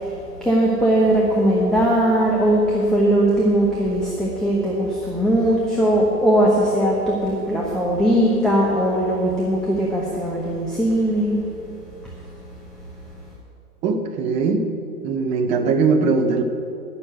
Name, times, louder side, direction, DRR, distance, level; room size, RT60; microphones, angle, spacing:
voice 1, 0.4-11.4, right 1 dB, ahead, -4 dB, 1.1 m, -19 dB
voice 2, 13.8-14.7 15.0-16.4, right 4 dB, 15° right, 6 dB, 0.6 m, -20 dB
10.5 x 6.8 x 9.1 m, 2.6 s
hypercardioid pair, 125°, 46 cm